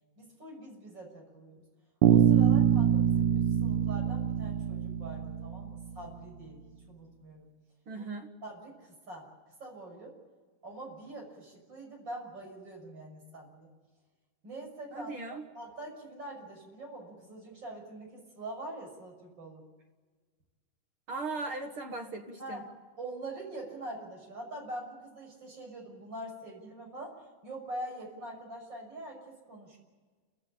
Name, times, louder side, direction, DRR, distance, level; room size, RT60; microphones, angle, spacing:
voice 1, 0.2-1.6 2.1-7.5 8.4-9.3 9.6-10.1 10.6-13.7 14.4-19.6 22.4-27.1 27.4-29.2 29.5-29.8, right 1 dB, 30° right, 0 dB, 6.7 m, -44 dB
Bass guitar, 2.0-5.9, right 10 dB, 70° right, 2.2 m, -25 dB
voice 2, 7.9-8.3 14.9-15.4 21.1-22.6, right 3 dB, 50° right, 4 dB, 1.7 m, -38 dB
29.5 x 15.5 x 8.8 m, 1.4 s
omnidirectional pair, 4.1 m